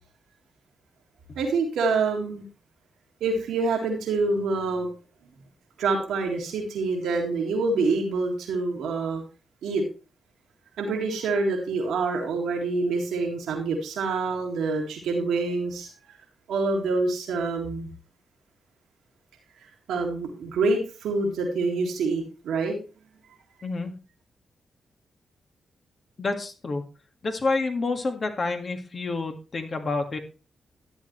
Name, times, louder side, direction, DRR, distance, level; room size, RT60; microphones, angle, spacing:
voice 1, 1.4-2.4 3.2-4.9 5.8-9.2 9.6-9.8 10.8-15.9 16.5-17.9 19.6-22.8, right 3 dB, 85° right, 0 dB, 1.9 m, -26 dB
voice 2, 26.2-26.8 27.2-30.2, left 3 dB, 50° left, 5 dB, 1.8 m, -28 dB
12.0 x 8.2 x 3.1 m, 0.34 s
supercardioid pair, 55°, 0 cm